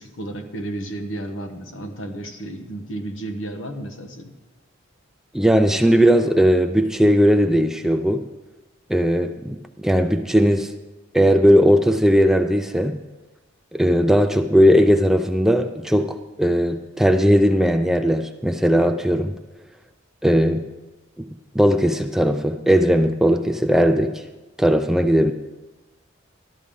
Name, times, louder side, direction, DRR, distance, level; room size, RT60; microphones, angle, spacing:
voice 1, 0.0-4.3, right 1 dB, 75° left, 5 dB, 1.2 m, -32 dB
voice 2, 5.3-8.3 8.9-10.7 11.1-13.0 13.7-19.4 20.2-20.7 21.2-21.3 21.5-24.2 24.6-25.3, equal, ahead, 7 dB, 0.4 m, -18 dB
13.5 x 12.0 x 3.7 m, 1.1 s
head